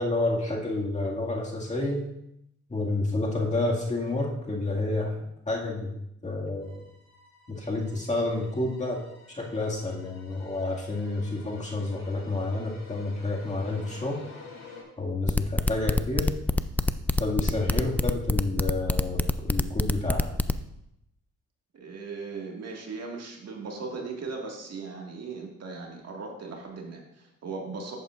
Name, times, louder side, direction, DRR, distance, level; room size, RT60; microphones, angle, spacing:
voice 1, 0.0-2.1 2.7-5.2 5.5-5.9 6.2-6.8 7.5-9.0 9.3-14.2 15.0-16.3 17.2-20.4, left 2 dB, 25° left, -3 dB, 2.1 m, -29 dB
sound 1, 6.6-14.8, left 3 dB, 60° left, 2.5 m, -50 dB
sound 2, 15.3-20.5, left 2 dB, 5° left, 0.3 m, -24 dB
voice 2, 21.7-28.0, right 4 dB, 55° right, 0 dB, 1.9 m, -38 dB
11.0 x 8.0 x 2.5 m, 0.80 s
cardioid pair, 90°, 30 cm